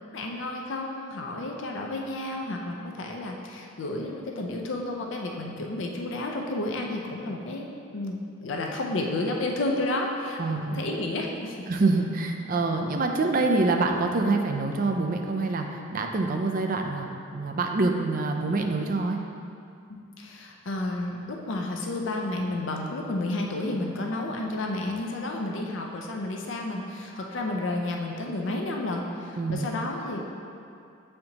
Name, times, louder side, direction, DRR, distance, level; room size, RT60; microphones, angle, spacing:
voice 1, 0.1-7.6 7.9-11.6 19.9-30.4, left 2 dB, 60° left, 1 dB, 0.5 m, -31 dB
voice 2, 10.4-10.8 11.7-19.2 29.4-29.7, right 3 dB, 40° right, 3 dB, 0.4 m, -26 dB
7.6 x 4.3 x 2.8 m, 2.5 s
head